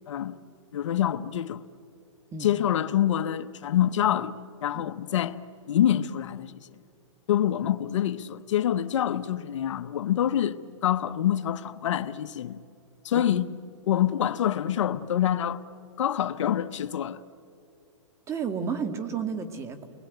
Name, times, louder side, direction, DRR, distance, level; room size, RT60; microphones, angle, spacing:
voice 1, 0.1-0.4 0.7-1.6 2.4-4.3 4.6-5.4 5.7-6.5 7.3-12.6 13.0-13.5 13.9-15.6 16.0-17.2, left 11 dB, 65° left, 0.9 m, -26 dB
voice 2, 18.3-19.9, right 6 dB, 15° right, 1.7 m, -32 dB
30.0 x 21.0 x 9.2 m
hypercardioid pair, 145°, 16 cm